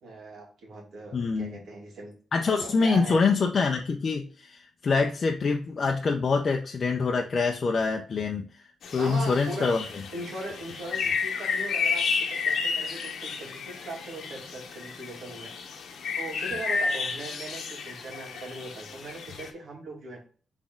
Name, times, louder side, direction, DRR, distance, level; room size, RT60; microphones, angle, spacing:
voice 1, 0.0-2.1 2.6-3.2 9.0-9.7 10.1-15.5 16.2-20.2, right 2 dB, 75° right, -1 dB, 2.0 m, -39 dB
voice 2, 1.1-1.6 2.3-8.4 8.9-9.9, left 4 dB, 40° left, 2 dB, 0.5 m, -25 dB
sound 1, 8.8-19.5, left 5 dB, 80° left, 0.9 m, -32 dB
4.1 x 3.5 x 3.5 m, 0.42 s
wide cardioid pair, 145°, 0 cm